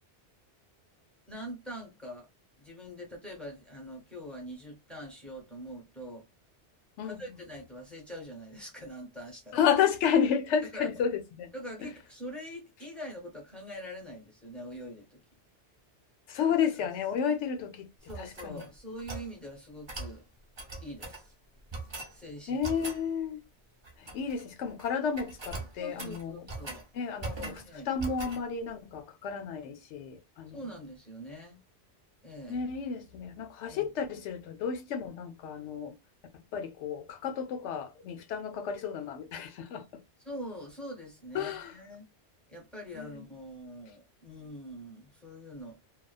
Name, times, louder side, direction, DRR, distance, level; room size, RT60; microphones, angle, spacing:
voice 1, 1.3-2.3 2.6-6.3 7.0-9.6 10.7-10.9 11.5-15.2 16.6-16.7 18.0-20.2 20.8-21.3 22.1-22.6 25.8-26.9 27.6-27.9 30.5-31.6 32.2-32.7 33.7-33.9 40.2-42.1 42.5-45.8, equal, ahead, 0.8 m, -44 dB
voice 2, 9.5-11.5 16.3-17.9 18.2-18.6 22.5-23.4 24.0-26.4 26.9-30.6 32.5-35.9 36.5-40.0 41.3-41.7 43.0-43.1, left 7 dB, 85° left, 0.9 m, -31 dB
sound 1, 18.1-19.3 19.9-20.2 20.6-21.2 21.7-22.1 22.6-23.0 23.8-24.4 24.7-24.9 25.2-26.8 27.2-27.7 28.0-28.4, right 3 dB, 30° right, 0.5 m, -40 dB
2.3 x 2.3 x 2.3 m
omnidirectional pair, 1.2 m